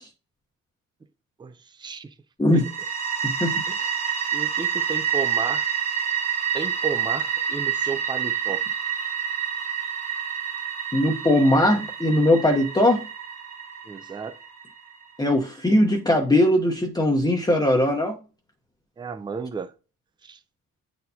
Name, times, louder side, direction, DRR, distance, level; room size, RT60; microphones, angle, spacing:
voice 1, 1.4-2.1 2.5-2.6 3.7-3.9 4.3-5.7 6.5-8.6 13.9-14.4 19.0-19.7 20.2-20.4, right 5 dB, 15° right, 0.4 m, -33 dB
sound 1, 2.5-15.2, right 8 dB, 50° right, 1.7 m, -28 dB
voice 2, 3.2-3.6 10.9-13.0 15.2-18.2, left 1 dB, 10° left, 0.8 m, -20 dB
9.1 x 4.3 x 2.7 m
wide cardioid pair, 170°, 34 cm